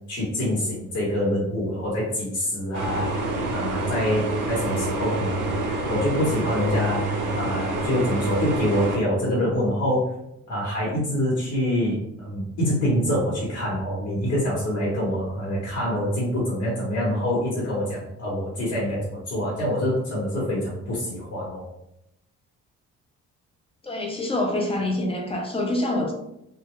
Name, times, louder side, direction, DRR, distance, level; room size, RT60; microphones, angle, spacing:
voice 1, 0.1-10.1 10.5-21.6, equal, 65° left, -6 dB, 1.0 m, -25 dB
sound 1, 2.7-9.0, right 2 dB, 90° right, 0.6 m, -27 dB
voice 2, 23.8-26.1, left 1 dB, 20° left, 1 dB, 0.6 m, -26 dB
2.2 x 2.1 x 3.0 m, 0.81 s
cardioid pair, 90°, 30 cm